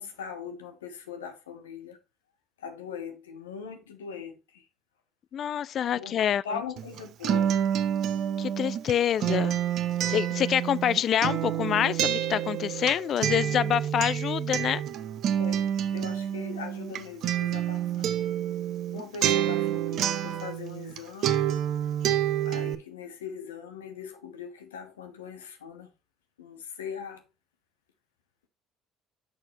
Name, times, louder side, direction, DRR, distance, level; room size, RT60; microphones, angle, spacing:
voice 1, 0.0-2.0 2.6-4.7 5.9-6.1 6.4-7.6 15.4-18.1 18.9-21.5 22.4-25.9 26.4-27.2, left 6 dB, 85° left, 0.9 m, -40 dB
voice 2, 5.3-6.4 8.4-9.6 10.1-14.8, left 9 dB, 50° left, 0.4 m, -26 dB
Acoustic guitar, 6.8-21.0 21.2-22.7, right 10 dB, 60° right, 0.7 m, -28 dB
6.2 x 6.2 x 3.1 m
hypercardioid pair, 55°, 0 cm